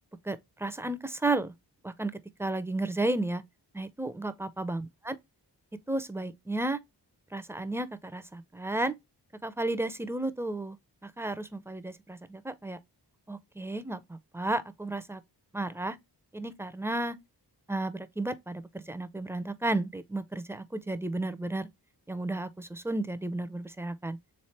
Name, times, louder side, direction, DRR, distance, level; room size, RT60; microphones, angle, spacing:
voice 1, 0.2-1.5 1.8-2.1 2.4-3.4 3.7-4.8 5.1-5.2 5.9-6.8 7.3-9.0 9.4-10.8 11.0-12.8 13.3-15.2 15.5-16.0 16.3-17.2 17.7-21.7 22.1-24.2, right 2 dB, 5° right, 0.4 m, -33 dB
3.6 x 3.2 x 4.2 m
wide cardioid pair, 90°, 42 cm